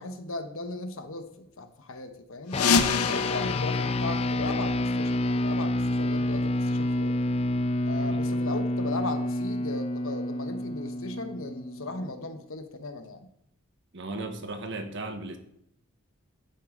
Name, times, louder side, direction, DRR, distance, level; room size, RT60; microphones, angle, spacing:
voice 1, 0.0-2.7 3.0-7.1 7.8-13.3, left 2 dB, 65° left, 7 dB, 1.1 m, -37 dB
sound 1, 2.5-5.1, left 5 dB, 90° left, 0.7 m, -28 dB
sound 2, 2.5-12.2, left 1 dB, 25° left, 0.4 m, -28 dB
voice 2, 13.9-15.4, right 2 dB, 55° right, 6 dB, 1.3 m, -36 dB
10.5 x 10.0 x 3.8 m, 0.73 s
head